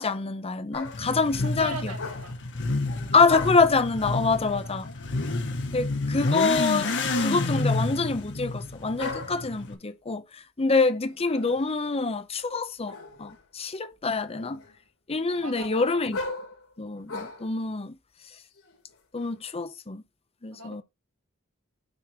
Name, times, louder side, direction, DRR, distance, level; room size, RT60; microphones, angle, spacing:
voice 1, 0.0-1.9 3.1-4.9 5.7-6.9 7.2-14.6 15.1-16.2 16.8-17.9 19.1-20.0 20.4-20.8, left 4 dB, 30° left, 0.7 m, -26 dB
sound 1, 0.7-1.2 1.9-2.5 2.8-3.8 4.8-5.5 7.1-8.1 9.0-9.6 11.0-11.7 12.9-13.4 13.9-14.8 15.2-17.5 18.2-19.3, left 3 dB, 85° left, 3.2 m, -39 dB
Motorcycle / Accelerating revving vroom, 0.8-9.7, left 2 dB, 60° left, 1.6 m, -29 dB
voice 2, 1.6-2.3 4.5-4.7 15.4-16.0 20.5-20.8, right 2 dB, 85° right, 2.6 m, -39 dB
9.7 x 4.5 x 4.5 m
head